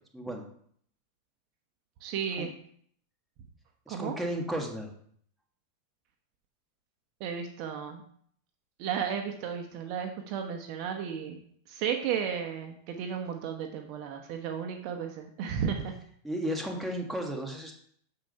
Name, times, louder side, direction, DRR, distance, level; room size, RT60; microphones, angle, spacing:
voice 1, 0.1-0.4 2.4-2.5 3.9-4.9 16.2-17.7, equal, 5° right, 1 dB, 1.7 m, -34 dB
voice 2, 2.0-2.5 3.9-4.2 7.2-8.0 8.8-11.4 11.7-15.9, right 7 dB, 50° right, 5 dB, 1.1 m, -34 dB
7.4 x 4.8 x 5.3 m, 0.62 s
supercardioid pair, 125°, 0 cm